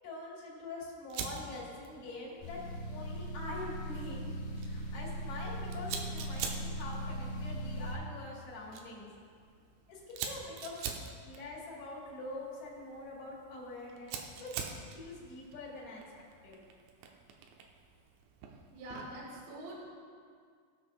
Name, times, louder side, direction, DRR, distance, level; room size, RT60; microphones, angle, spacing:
voice 1, 0.0-4.3 4.6-9.1 9.9-10.8 11.2-16.0 16.4-16.6, left 2 dB, 45° left, -5 dB, 3.3 m, -45 dB
Fire, 1.1-19.3, right 6 dB, 80° right, 2.7 m, -46 dB
sound 1, 2.4-8.0, right 1 dB, 65° left, 2.2 m, -39 dB
voice 2, 18.7-19.8, right 1 dB, 60° right, -4 dB, 2.8 m, -44 dB
19.0 x 6.7 x 2.5 m, 2.1 s
omnidirectional pair, 5.5 m